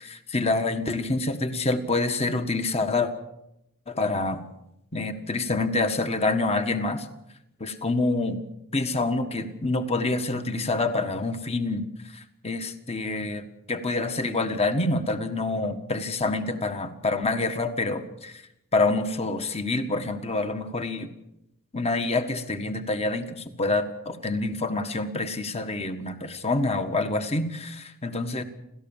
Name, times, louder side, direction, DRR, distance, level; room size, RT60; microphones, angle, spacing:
voice 1, 0.0-3.1 3.9-4.4 4.9-7.1 7.6-8.4 8.7-11.8 12.1-18.4 18.7-21.1 21.7-28.4, left 2 dB, 30° left, 8 dB, 1.7 m, -27 dB
29.5 x 14.0 x 7.4 m, 0.84 s
head